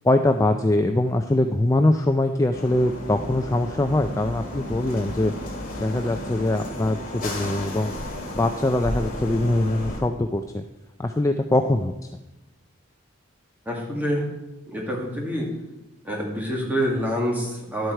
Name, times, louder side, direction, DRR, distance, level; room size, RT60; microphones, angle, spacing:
voice 1, 0.0-5.3 5.8-7.9 8.3-10.6 11.0-11.9, left 1 dB, 15° left, 6 dB, 0.3 m, -22 dB
sound 1, 2.5-10.0, left 1 dB, 40° left, 2.5 m, -33 dB
voice 2, 13.7-14.3 14.7-15.5 16.0-17.9, equal, 10° right, -2 dB, 2.0 m, -26 dB
11.5 x 7.9 x 4.5 m, 0.98 s
head